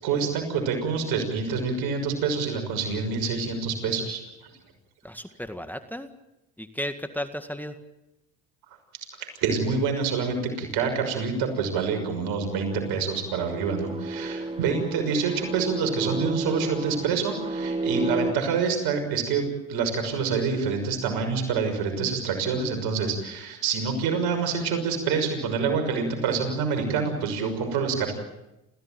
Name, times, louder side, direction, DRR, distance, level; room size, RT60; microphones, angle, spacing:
voice 1, 0.0-4.5 9.4-28.1, right 5 dB, 75° right, 5 dB, 6.2 m, -27 dB
voice 2, 5.0-6.1 6.6-7.8, equal, 5° left, 8 dB, 2.0 m, -34 dB
sound 1, 12.4-18.3, right 2 dB, 15° right, 2.5 m, -32 dB
29.0 x 16.0 x 9.2 m, 0.94 s
hypercardioid pair, 60°, 37 cm